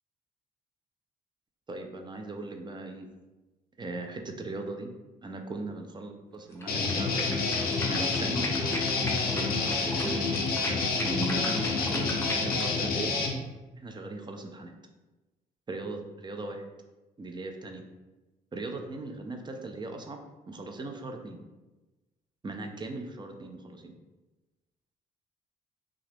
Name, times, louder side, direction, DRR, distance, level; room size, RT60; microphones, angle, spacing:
voice 1, 1.7-3.1 3.8-4.9 5.2-7.4 7.7-10.2 11.0-13.3 13.8-14.7 15.7-16.6 17.2-17.8 18.5-20.2 20.5-21.4 22.4-23.9, right 2 dB, 25° right, 4 dB, 0.5 m, -38 dB
sound 1, 6.5-12.7, left 1 dB, 15° left, 0.7 m, -38 dB
Guitar, 6.7-13.4, left 4 dB, 55° left, 0.7 m, -28 dB
2.8 x 2.4 x 3.3 m, 1.1 s
hypercardioid pair, 55°, 18 cm